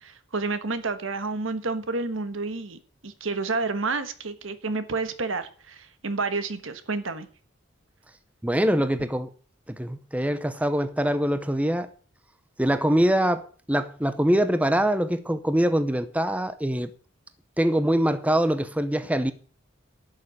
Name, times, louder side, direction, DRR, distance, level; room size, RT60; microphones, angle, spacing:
voice 1, 0.0-7.3, right 3 dB, 80° right, 1.4 m, -30 dB
voice 2, 8.4-9.3 9.7-11.9 12.6-16.9 17.6-19.3, right 1 dB, 5° right, 0.7 m, -24 dB
11.5 x 6.6 x 8.6 m
head